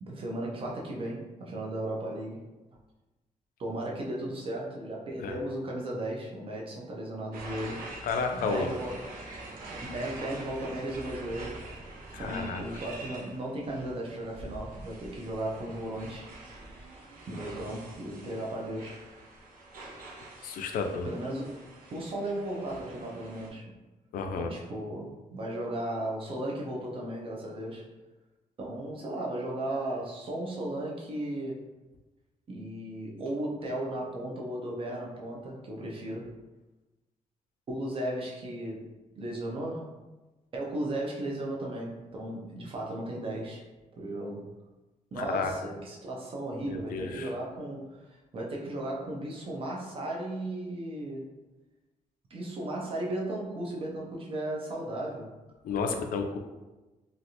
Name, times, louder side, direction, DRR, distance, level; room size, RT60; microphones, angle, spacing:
voice 1, 0.0-2.5 3.6-7.8 8.3-9.1 9.8-11.6 12.2-16.4 17.3-19.0 21.0-21.6 21.9-23.7 24.4-27.9 28.6-31.6 32.5-36.3 37.7-38.9 39.2-39.9 40.5-43.6 44.0-44.5 45.1-51.3 52.3-55.3, right 1 dB, 40° right, -2 dB, 0.7 m, -35 dB
sound 1, 7.3-23.5, right 2 dB, 85° right, 0.7 m, -45 dB
voice 2, 8.0-8.7 12.1-12.6 20.4-21.1 24.1-24.5 45.2-45.5 46.6-47.3 55.6-56.4, left 5 dB, 80° left, 5 dB, 0.4 m, -31 dB
3.2 x 2.4 x 2.7 m, 1.1 s
cardioid pair, 130°, 14 cm